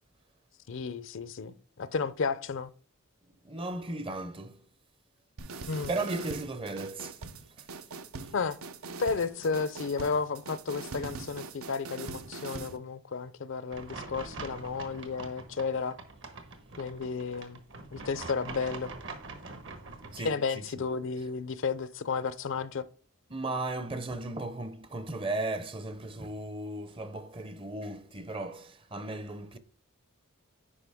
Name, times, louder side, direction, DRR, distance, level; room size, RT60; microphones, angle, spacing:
voice 1, 0.7-2.7 5.7-5.9 8.3-8.6 9.0-16.0 16.8-17.6 17.9-18.9 20.2-22.8, left 5 dB, 60° left, 0.5 m, -32 dB
voice 2, 3.4-4.6 5.6-7.2 7.6-7.8 20.1-20.6 23.3-29.6, right 2 dB, 25° right, 0.6 m, -36 dB
sound 1, 5.4-12.8, right 4 dB, 75° right, 0.7 m, -42 dB
sound 2, 13.7-20.3, right 3 dB, 60° right, 1.3 m, -44 dB
9.9 x 5.1 x 3.5 m
head